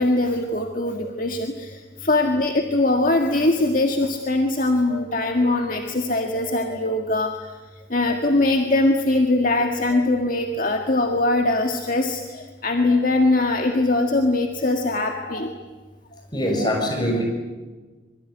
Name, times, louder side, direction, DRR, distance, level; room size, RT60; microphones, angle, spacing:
voice 1, 0.0-1.7 2.0-7.3 7.9-15.5 16.6-16.9, left 2 dB, 50° left, 3 dB, 1.8 m, -21 dB
voice 2, 16.3-17.2, equal, 25° left, 2 dB, 6.9 m, -23 dB
25.0 x 23.0 x 10.0 m, 1.3 s
head